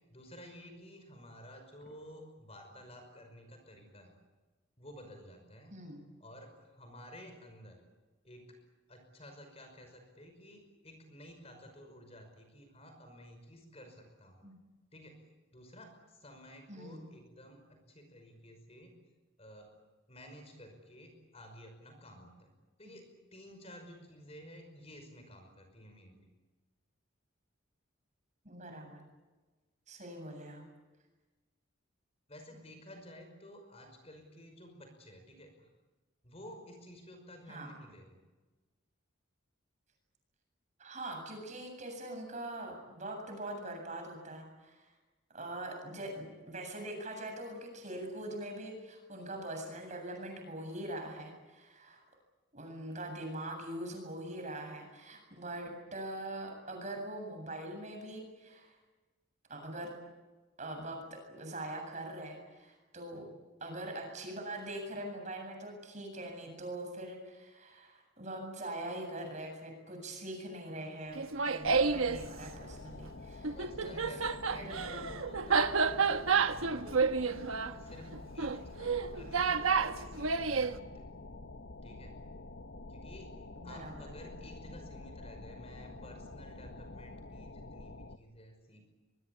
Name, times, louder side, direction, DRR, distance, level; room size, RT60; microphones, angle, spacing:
voice 1, 0.0-4.2 4.8-5.8 6.2-7.8 8.2-8.6 8.9-14.5 14.9-15.2 15.5-18.9 19.4-19.7 20.1-22.5 22.8-26.2 32.3-35.7 36.2-38.2 73.5-77.1 77.7-81.1 81.8-82.1 82.9-83.3 83.6-88.8, equal, 30° left, 5 dB, 5.6 m, -53 dB
voice 2, 16.7-17.0 22.8-23.0 28.4-29.0 29.9-30.6 37.5-37.7 40.8-44.9 45.3-52.0 52.5-58.8 59.5-59.9 60.6-63.2 63.6-74.2 74.5-75.0 75.4-75.5 83.6-84.1, right 1 dB, 35° right, 3 dB, 7.8 m, -43 dB
Laughter, 71.1-72.2 73.4-80.7, right 5 dB, 85° right, 1.2 m, -30 dB
sound 1, 71.6-88.2, left 2 dB, 60° left, 1.1 m, -48 dB
25.0 x 23.0 x 8.6 m, 1.2 s
head